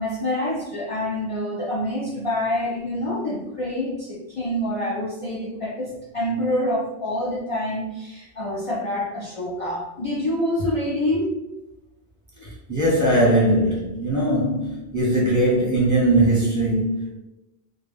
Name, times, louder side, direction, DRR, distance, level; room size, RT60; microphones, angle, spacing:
voice 1, 0.0-11.3, left 1 dB, 65° left, -5 dB, 0.3 m, -26 dB
voice 2, 12.7-17.1, right 1 dB, 20° right, -7 dB, 0.8 m, -20 dB
2.2 x 2.2 x 3.3 m, 0.97 s
omnidirectional pair, 1.1 m